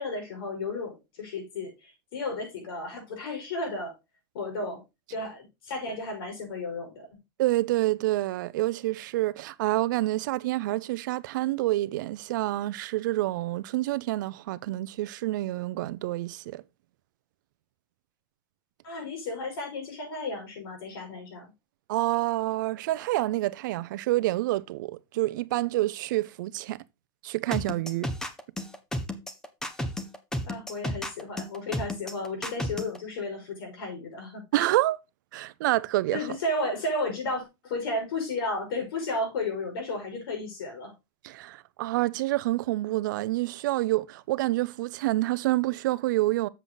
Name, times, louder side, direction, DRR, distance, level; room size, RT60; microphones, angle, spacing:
voice 1, 0.0-3.9 4.3-4.8 5.1-7.1 18.8-21.5 30.4-34.7 36.1-40.9, left 2 dB, 85° left, 5.7 m, -33 dB
voice 2, 7.4-16.6 21.9-26.8 27.2-28.1 34.5-35.0 35.3-36.2 41.2-46.5, right 17 dB, 55° right, 0.5 m, -28 dB
sound 1, 27.5-33.0, left 1 dB, 5° left, 0.6 m, -32 dB
7.6 x 6.7 x 3.8 m
supercardioid pair, 180°, 12 cm